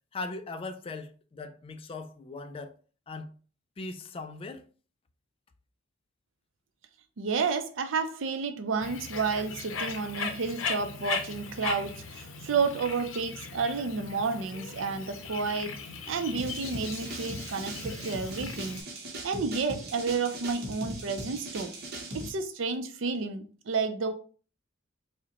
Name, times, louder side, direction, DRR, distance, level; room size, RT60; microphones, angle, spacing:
voice 1, 0.1-2.8 3.1-3.3 3.8-4.6, left 3 dB, 30° left, 0.3 m, -39 dB
voice 2, 7.2-15.7 16.1-18.9 19.2-21.7 22.1-24.1, right 4 dB, 75° right, 0.5 m, -31 dB
Bird, 8.8-18.8, left 5 dB, 80° left, 0.5 m, -38 dB
sound 1, 16.4-22.3, right 1 dB, 55° right, 0.8 m, -39 dB
4.9 x 2.1 x 2.9 m
head